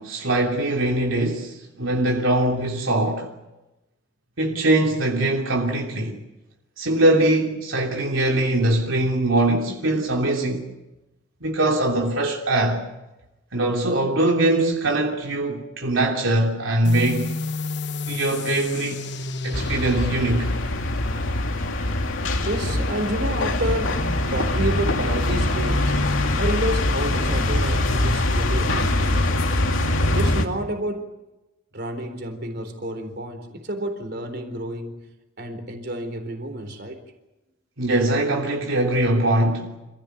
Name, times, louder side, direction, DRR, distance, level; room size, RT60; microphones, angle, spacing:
voice 1, 0.0-3.3 4.4-6.2 6.8-10.6 11.4-12.9 13.5-17.4 18.1-19.0 19.4-20.5 37.8-39.7, right 1 dB, 80° right, 3.2 m, -22 dB
sound 1, 16.8-24.1, left 3 dB, 60° left, 1.1 m, -33 dB
sound 2, 19.5-30.4, left 1 dB, 80° left, 2.4 m, -23 dB
voice 2, 21.6-24.0 24.3-26.1 26.4-29.4 30.1-31.0 31.7-35.1 35.4-37.0, right 1 dB, 55° right, 4.1 m, -30 dB
28.0 x 15.5 x 9.5 m
head